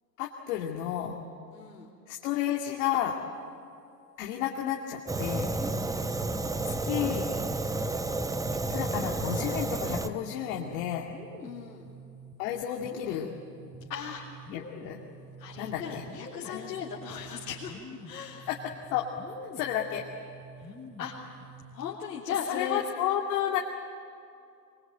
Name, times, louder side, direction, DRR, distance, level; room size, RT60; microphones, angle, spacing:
voice 1, 0.2-1.2 2.1-3.2 4.2-5.5 6.6-7.3 8.7-11.1 12.4-13.3 14.5-15.0 15.6-16.1 16.4-16.8 18.5-19.1 19.5-20.0 22.4-23.6, left 11 dB, 60° left, 0 dB, 2.4 m, -31 dB
voice 2, 1.5-1.9 7.0-7.2 11.4-11.8 13.9-14.3 15.4-17.8 18.0-18.5 20.6-20.7 21.0-21.1 21.7-22.8, left 7 dB, 80° left, -6 dB, 3.7 m, -37 dB
Fire, 5.1-10.1, right 2 dB, 5° right, 0.8 m, -31 dB
sound 1, 9.4-21.9, right 1 dB, 15° left, 4.2 m, -47 dB
23.5 x 23.5 x 9.2 m, 2.5 s
hypercardioid pair, 105°, 49 cm